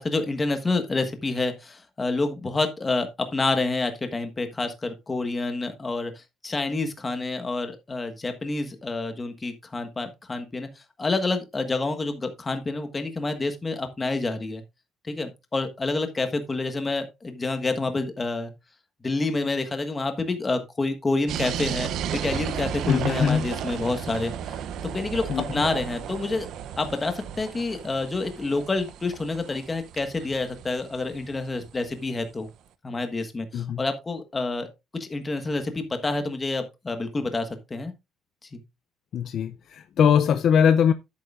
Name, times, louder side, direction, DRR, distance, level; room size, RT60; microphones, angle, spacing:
voice 1, 0.0-6.1 6.4-10.7 11.0-14.6 15.0-18.5 19.0-24.3 24.9-26.5 26.8-32.5 32.8-34.7 34.9-37.9 38.5-38.6, left 3 dB, 15° left, 1.5 m, -28 dB
sound 1, 21.3-32.0, right 9 dB, 60° right, 0.7 m, -34 dB
voice 2, 22.9-23.5 25.3-25.6 33.5-33.8 39.1-40.9, left 8 dB, 45° left, 0.5 m, -21 dB
10.5 x 8.6 x 2.5 m
cardioid pair, 160°, 0 cm